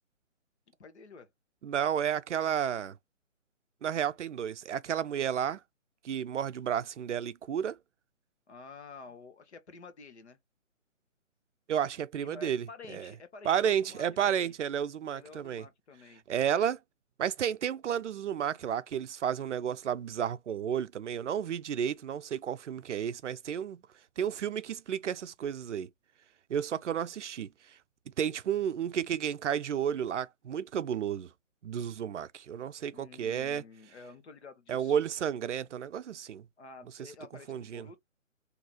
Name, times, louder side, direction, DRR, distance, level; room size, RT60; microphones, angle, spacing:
voice 1, 0.8-1.3 8.5-10.4 12.2-14.5 15.1-16.2 32.9-35.0 36.6-38.0, left 4 dB, 55° left, 1.0 m, -50 dB
voice 2, 1.6-2.9 3.8-5.6 6.0-7.8 11.7-12.7 12.9-13.1 13.5-15.6 16.3-16.8 17.2-23.8 24.2-25.9 26.5-27.5 28.2-31.3 31.6-33.6 34.7-36.4 37.5-37.9, right 9 dB, 65° right, 0.5 m, -32 dB
3.8 x 2.8 x 2.7 m
figure-of-eight pair, 150°, 39 cm